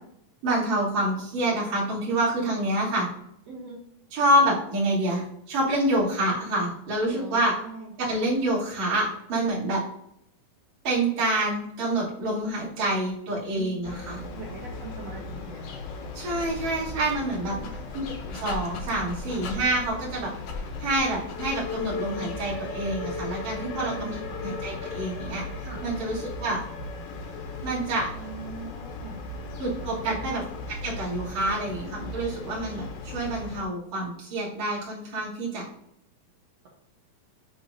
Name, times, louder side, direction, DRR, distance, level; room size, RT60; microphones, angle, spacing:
voice 1, 0.4-3.1 4.1-7.6 8.0-9.8 10.8-14.2 16.1-17.5 17.9-20.3 20.8-26.6 27.6-28.1 29.6-30.4 30.7-35.6, right 1 dB, 50° right, -8 dB, 4.0 m, -27 dB
voice 2, 3.5-3.8 7.1-7.9 13.5-14.0 14.3-15.8 17.3-17.7 23.6-24.2 25.6-25.8 28.1-29.2 29.8-30.2, right 4 dB, 70° right, -2 dB, 1.6 m, -41 dB
sound 1, 13.8-33.6, left 3 dB, 70° left, 2.3 m, -37 dB
Dog, 15.9-22.0, left 3 dB, 85° left, 1.4 m, -41 dB
10.5 x 4.5 x 2.7 m, 0.74 s
omnidirectional pair, 4.3 m